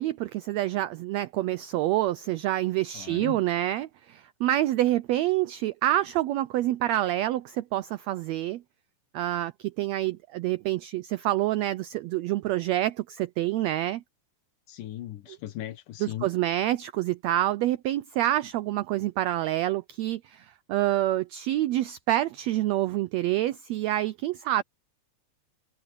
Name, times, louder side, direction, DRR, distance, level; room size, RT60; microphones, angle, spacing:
voice 1, 0.0-8.6 9.1-14.0 16.0-24.6, right 14 dB, 85° right, 1.5 m, -27 dB
voice 2, 2.9-3.4 14.7-16.3, left 14 dB, 85° left, 2.7 m, -38 dB
omnidirectional pair, 3.7 m